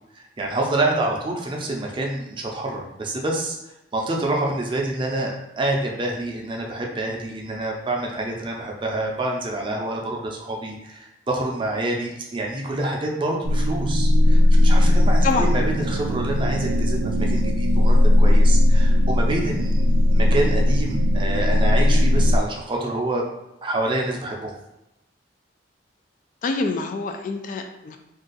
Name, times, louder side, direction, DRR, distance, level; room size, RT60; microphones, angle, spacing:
voice 1, 0.2-3.6 3.9-23.2 23.6-24.5, right 2 dB, 30° right, 0 dB, 0.5 m, -27 dB
sound 1, 13.4-22.4, left 1 dB, 90° right, 0.3 m, -18 dB
voice 2, 26.4-28.0, left 3 dB, 45° left, 5 dB, 0.3 m, -26 dB
2.6 x 2.3 x 3.9 m, 0.88 s
head